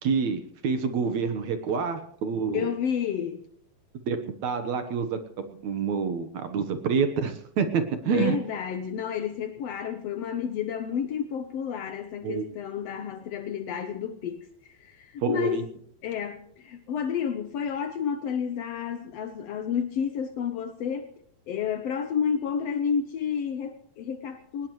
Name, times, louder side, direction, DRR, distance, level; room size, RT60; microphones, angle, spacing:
voice 1, 0.0-2.7 4.1-8.4 12.2-12.4 15.2-15.6, right 6 dB, 60° right, 2.1 m, -27 dB
voice 2, 2.5-3.4 8.1-15.6 16.0-21.1 21.5-24.7, left 7 dB, 80° left, 1.4 m, -30 dB
21.5 x 19.5 x 3.1 m
omnidirectional pair, 4.3 m